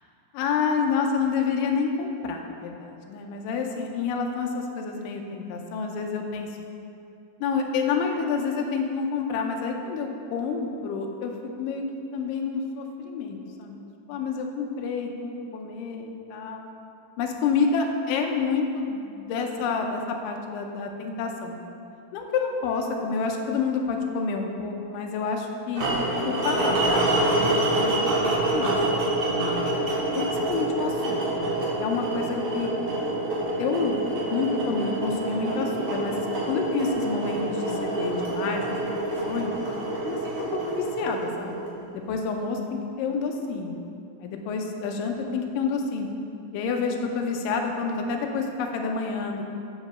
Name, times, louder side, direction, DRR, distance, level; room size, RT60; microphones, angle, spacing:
voice 1, 0.3-6.5 7.4-11.8 12.1-16.6 17.2-21.6 22.1-25.9 26.2-28.1 28.5-29.7 30.2-31.5 31.8-32.7 33.6-34.0 34.3-36.1 36.5-39.0 39.3-39.5 40.1-41.6 41.9-43.8 44.2-46.1 46.5-49.4, left 5 dB, 80° left, 2 dB, 2.3 m, -29 dB
sound 1, 25.7-41.9, right 1 dB, 55° right, 2.4 m, -27 dB
7.5 x 5.1 x 6.7 m, 2.7 s
omnidirectional pair, 4.0 m